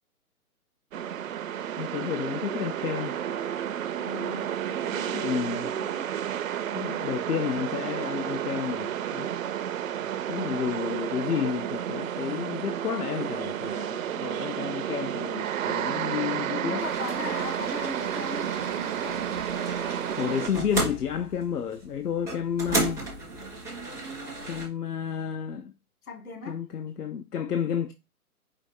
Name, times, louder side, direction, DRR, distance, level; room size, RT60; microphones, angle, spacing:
sound 1, 0.9-20.5, right 10 dB, 60° right, 0.6 m, -31 dB
voice 1, 1.8-3.1 5.1-5.7 6.7-9.3 10.3-16.8 20.2-23.0 24.5-25.7 26.5-27.9, left 8 dB, 90° left, 0.6 m, -31 dB
voice 2, 4.0-6.1 16.6-19.4 26.0-26.6, left 3 dB, 65° left, 1.8 m, -39 dB
sound 2, 16.8-24.7, right 2 dB, 5° left, 0.4 m, -35 dB
5.0 x 2.4 x 4.1 m
hypercardioid pair, 135°, 45 cm